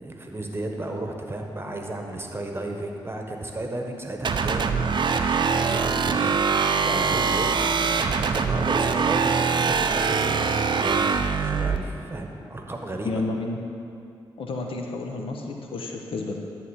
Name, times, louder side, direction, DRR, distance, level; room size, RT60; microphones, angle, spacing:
voice 1, 0.0-7.6 8.2-13.2, right 1 dB, 25° right, 2 dB, 1.2 m, -34 dB
sound 1, 4.2-11.8, right 5 dB, 55° right, 0.5 m, -23 dB
voice 2, 13.0-13.6 14.4-16.4, left 3 dB, 70° left, 2 dB, 1.0 m, -31 dB
11.0 x 3.7 x 7.2 m, 2.6 s
cardioid pair, 55°, 9 cm